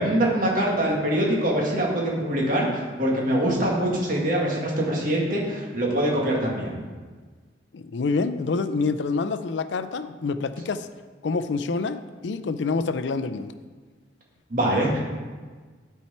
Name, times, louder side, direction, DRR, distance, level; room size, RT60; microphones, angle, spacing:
voice 1, 0.0-6.8 14.5-15.0, right 1 dB, 50° right, -2 dB, 1.9 m, -24 dB
voice 2, 7.7-10.9 11.2-13.5, left 4 dB, 85° left, 12 dB, 0.4 m, -27 dB
12.0 x 4.6 x 4.3 m, 1.4 s
head